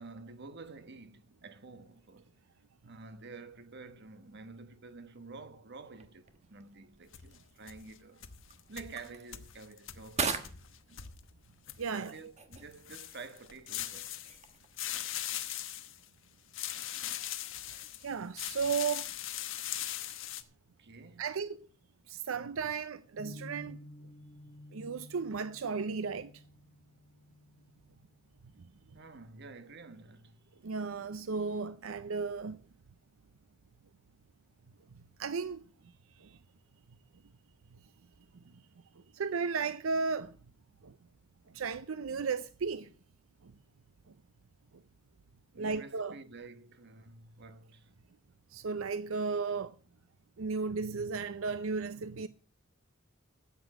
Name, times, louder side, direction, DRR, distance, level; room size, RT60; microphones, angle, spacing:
voice 1, 0.0-2.3 2.8-8.2 8.7-11.1 11.9-14.2 14.9-15.0 15.3-15.8 16.7-17.2 20.8-21.3 28.9-30.6 45.5-47.9, right 3 dB, 55° right, 1.2 m, -50 dB
sound 1, 5.8-15.0, right 5 dB, 35° right, 1.3 m, -43 dB
sound 2, 7.1-12.1 12.5-14.5 14.8-16.0 16.5-18.1 18.4-20.4, left 12 dB, 65° left, 1.1 m, -40 dB
voice 2, 11.8-12.2 17.7-19.1 21.2-21.7 22.1-23.8 24.7-26.4 30.6-32.6 35.2-35.7 36.2-36.4 37.7-37.8 39.0-40.4 40.8-41.0 41.5-42.9 43.4-43.5 44.7-44.8 45.6-46.2 48.5-49.8 50.4-52.3, right 5 dB, 85° right, 0.6 m, -35 dB
sound 3, 23.2-29.2, left 1 dB, 40° left, 4.9 m, -53 dB
13.0 x 8.1 x 6.3 m
head